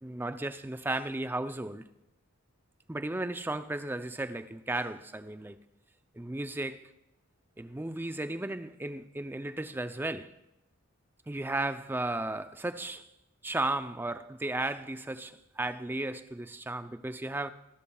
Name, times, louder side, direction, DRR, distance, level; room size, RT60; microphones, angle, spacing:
voice 1, 0.0-1.9 2.9-5.6 6.1-6.9 7.6-10.3 11.3-13.1 13.4-17.5, right 2 dB, 10° right, 0.4 m, -34 dB
25.5 x 12.5 x 2.3 m
head